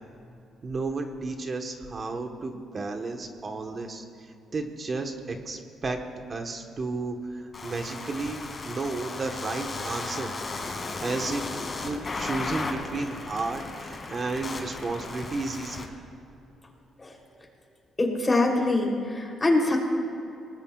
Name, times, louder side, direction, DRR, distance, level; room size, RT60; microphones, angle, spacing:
voice 1, 0.6-6.0 6.3-10.3 10.8-11.4 11.7-15.8, right 3 dB, 40° right, 4 dB, 1.4 m, -33 dB
sound 1, 7.5-15.8, left 3 dB, 40° left, 2.6 m, -35 dB
voice 2, 18.0-19.8, left 2 dB, 25° left, 0 dB, 3.5 m, -24 dB
25.5 x 19.5 x 2.5 m, 2.8 s
cardioid pair, 90°, 0 cm